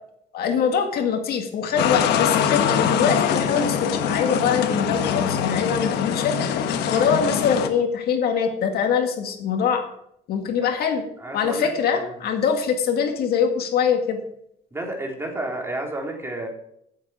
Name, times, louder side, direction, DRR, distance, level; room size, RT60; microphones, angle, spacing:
voice 1, 0.3-3.8 4.0-6.4 6.9-9.8 10.3-11.0 11.3-14.2, left 7 dB, 65° left, 4 dB, 2.0 m, -23 dB
sound 1, 1.8-7.7, left 8 dB, 80° left, 1.3 m, -23 dB
voice 2, 11.2-12.2 14.7-16.5, right 1 dB, 15° right, 0 dB, 3.5 m, -31 dB
15.0 x 7.7 x 4.9 m, 0.73 s
cardioid pair, 110°, 17 cm